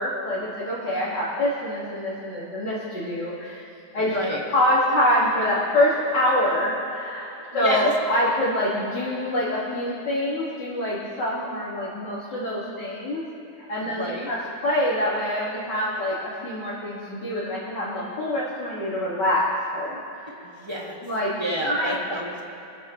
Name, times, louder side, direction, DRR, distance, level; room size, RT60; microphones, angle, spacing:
voice 1, 0.0-3.6 3.9-4.1 4.5-13.2 13.6-14.4 14.6-19.4 19.7-20.5 21.0-21.3 21.6-22.0, left 1 dB, 85° left, -8 dB, 2.9 m, -25 dB
voice 2, 7.5-7.9 13.8-14.3 20.4-21.0 21.4-22.4, right 1 dB, 15° right, -2 dB, 1.7 m, -29 dB
23.5 x 14.5 x 3.2 m, 2.9 s
omnidirectional pair, 1.8 m